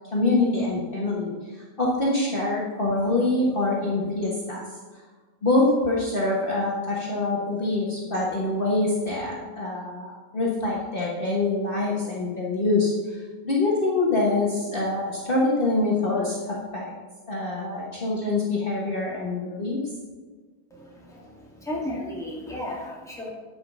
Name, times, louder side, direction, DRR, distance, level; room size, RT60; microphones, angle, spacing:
voice 1, 0.1-1.3 1.8-4.6 5.4-16.9 17.3-19.8, left 2 dB, 40° left, -5 dB, 1.5 m, -25 dB
voice 2, 20.7-23.3, left 1 dB, ahead, -5 dB, 1.9 m, -34 dB
9.5 x 5.6 x 6.0 m, 1.4 s
omnidirectional pair, 1.5 m